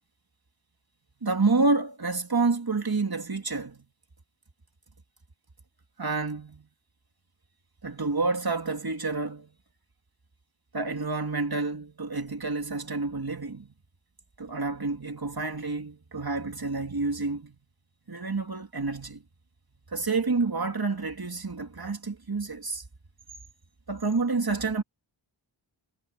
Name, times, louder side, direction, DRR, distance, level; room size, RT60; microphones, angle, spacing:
voice 1, 1.2-3.9 6.0-6.7 7.8-9.5 10.7-13.7 14.4-17.6 18.1-19.2 19.9-22.8 23.9-24.8, right 3 dB, 50° right, 2.7 m, -29 dB
wide cardioid pair, 50°, 48 cm